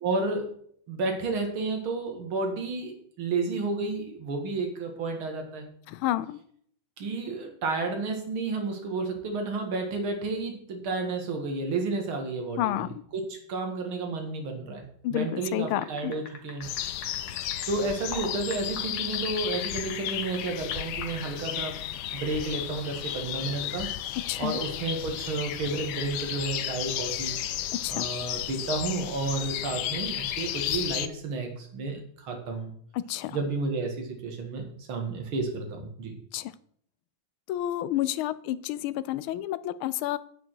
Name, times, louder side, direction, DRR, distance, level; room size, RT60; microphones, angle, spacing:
voice 1, 0.0-0.6 0.9-5.7 7.0-12.8 13.1-14.8 15.1-16.7 17.7-21.8 22.1-23.9 24.4-27.4 27.9-32.7 33.3-36.1, right 3 dB, 85° right, 3 dB, 2.5 m, -31 dB
voice 2, 5.9-6.4 12.6-13.0 15.0-16.1 24.3-24.6 27.7-28.1 32.9-33.4 36.3-36.5 37.5-40.2, left 13 dB, 85° left, 16 dB, 1.4 m, -30 dB
sound 1, 15.8-17.7 18.1-20.4 20.7-21.0, left 4 dB, 50° left, 2.0 m, -40 dB
sound 2, 16.6-31.1, left 12 dB, 70° left, 1.0 m, -33 dB
9.0 x 8.1 x 4.6 m, 0.64 s
omnidirectional pair, 2.2 m